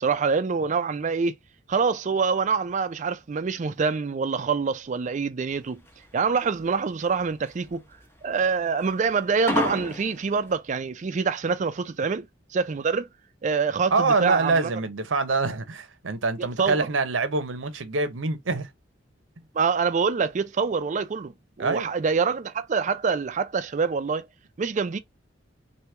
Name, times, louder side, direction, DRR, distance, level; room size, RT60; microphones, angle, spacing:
voice 1, 0.0-1.3 1.7-5.8 6.1-7.8 8.2-12.3 12.5-13.1 13.4-14.7 16.4-16.9 19.5-24.3 24.6-25.0, right 5 dB, 40° right, 0.4 m, -25 dB
sound 1, 5.5-10.6, left 1 dB, 10° left, 0.7 m, -31 dB
voice 2, 13.9-18.7 21.6-21.9, right 3 dB, 90° right, 0.8 m, -25 dB
3.0 x 2.7 x 3.2 m
head